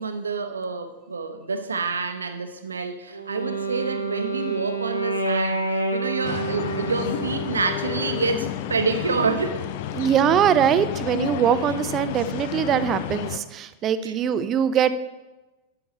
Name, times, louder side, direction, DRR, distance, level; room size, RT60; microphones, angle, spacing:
voice 1, 0.0-9.7 14.0-14.1, right 4 dB, 75° right, 8 dB, 0.8 m, -28 dB
Wind instrument woodwind instrument, 3.1-7.7, right 2 dB, 85° left, 1.0 m, -28 dB
sound 1, 6.2-13.4, left 11 dB, 50° left, 0.4 m, -31 dB
voice 2, 9.9-14.9, right 9 dB, 30° right, 13 dB, 0.5 m, -22 dB
11.5 x 5.8 x 4.2 m, 1.1 s
figure-of-eight pair, 90°, 0 cm